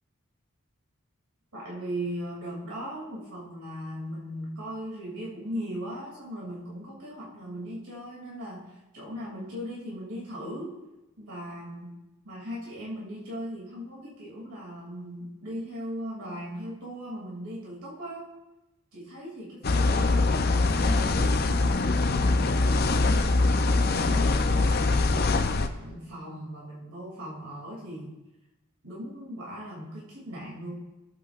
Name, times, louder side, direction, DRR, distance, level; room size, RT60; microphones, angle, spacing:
voice 1, 1.5-10.7 11.2-11.9 12.2-18.3 18.9-22.9 23.8-28.2 28.8-30.7, equal, 85° right, -5 dB, 2.6 m, -38 dB
sound 1, 19.6-25.7, left 3 dB, 45° left, 0.5 m, -23 dB
20.0 x 7.9 x 2.5 m, 1.0 s
head